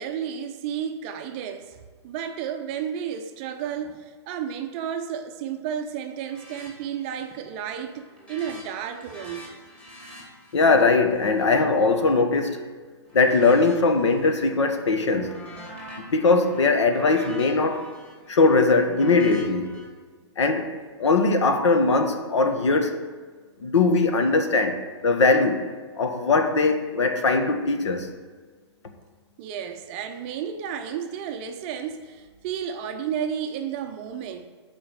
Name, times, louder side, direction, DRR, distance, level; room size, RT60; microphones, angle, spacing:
voice 1, 0.0-8.0 8.3-9.5 29.4-34.5, right 8 dB, 25° right, 0.5 m, -32 dB
sound 1, 6.2-6.7 7.0-7.4 7.7-12.6 13.1-14.4 14.8-19.8, equal, 10° left, 2.1 m, -44 dB
voice 2, 10.5-12.6 13.1-15.3 16.1-17.9 18.3-19.7 20.4-20.7 21.0-22.9 23.6-24.8 25.0-25.6 26.0-28.1, left 3 dB, 80° left, 1.5 m, -20 dB
11.5 x 5.0 x 6.3 m
hypercardioid pair, 165°, 15 cm